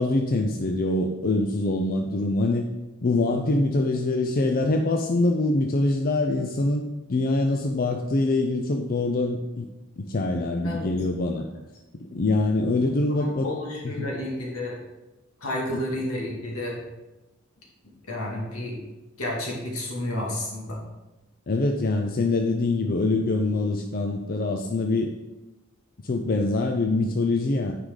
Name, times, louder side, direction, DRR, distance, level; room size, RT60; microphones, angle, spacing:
voice 1, 0.0-2.7 3.0-6.8 7.1-9.7 10.0-11.4 11.9-13.5 13.8-13.9 15.7-15.8 21.5-25.1 26.0-27.7, left 2 dB, 45° left, 3 dB, 0.5 m, -24 dB
voice 2, 12.8-14.8 15.4-16.8 18.1-18.8 19.2-20.8, left 1 dB, 80° left, -3 dB, 2.2 m, -31 dB
9.7 x 4.9 x 3.9 m, 1.1 s
head